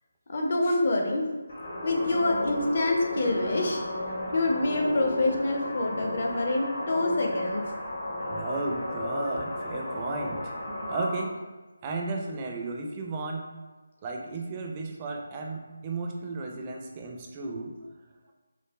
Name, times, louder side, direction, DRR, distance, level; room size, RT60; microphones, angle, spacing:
voice 1, 0.3-1.3 1.8-3.8 4.3-7.6, left 2 dB, 50° left, 1 dB, 0.6 m, -26 dB
sound 1, 1.5-11.3, left 1 dB, 70° left, 1.1 m, -33 dB
voice 2, 8.3-10.5 10.9-11.3 11.8-13.5 14.0-17.7, right 3 dB, 25° right, 1 dB, 0.4 m, -34 dB
4.6 x 2.1 x 2.3 m, 1.2 s
figure-of-eight pair, 155°, 0 cm